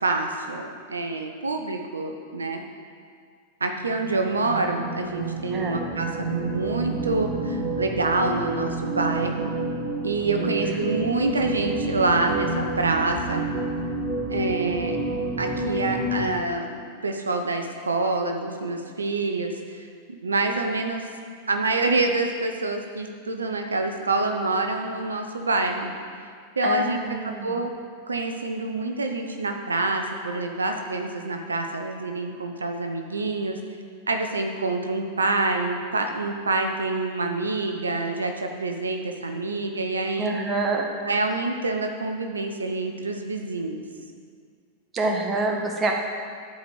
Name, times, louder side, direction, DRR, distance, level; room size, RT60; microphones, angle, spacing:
voice 1, 0.0-2.6 3.6-9.5 10.0-13.5 14.3-15.0 15.4-21.1 21.5-25.9 26.6-27.0 27.4-27.7 28.1-33.6 34.1-40.4 41.0-43.8, right 2 dB, 85° right, 5 dB, 0.8 m, -26 dB
sound 1, 3.7-16.3, right 2 dB, 50° right, 1.4 m, -29 dB
voice 2, 10.4-10.9 26.6-27.6 40.2-40.9 44.9-45.9, right 3 dB, 25° right, 1 dB, 1.8 m, -27 dB
12.0 x 4.9 x 8.0 m, 2.1 s
figure-of-eight pair, 95°, 0 cm